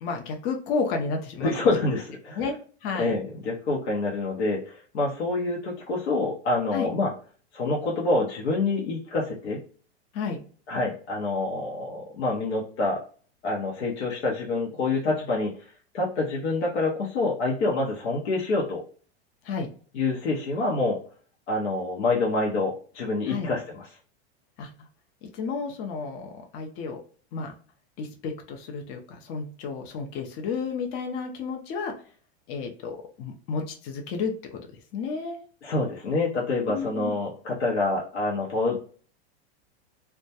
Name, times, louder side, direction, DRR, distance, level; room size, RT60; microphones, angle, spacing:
voice 1, 0.0-1.5 2.3-2.5 2.8-3.1 6.7-6.9 10.1-10.4 19.4-19.7 23.3-23.5 24.6-24.9 25.2-27.0 27.3-27.5 28.0-31.9 32.5-34.7 34.9-35.4 36.7-37.1, left 5 dB, 40° left, 3 dB, 0.5 m, -32 dB
voice 2, 1.4-2.4 2.9-7.1 7.5-9.6 10.7-13.0 13.4-15.5 15.9-18.8 19.9-21.0 21.5-23.9 35.6-38.8, left 3 dB, 85° left, -2 dB, 0.7 m, -27 dB
2.2 x 2.1 x 2.7 m, 0.42 s
hypercardioid pair, 120°, 33 cm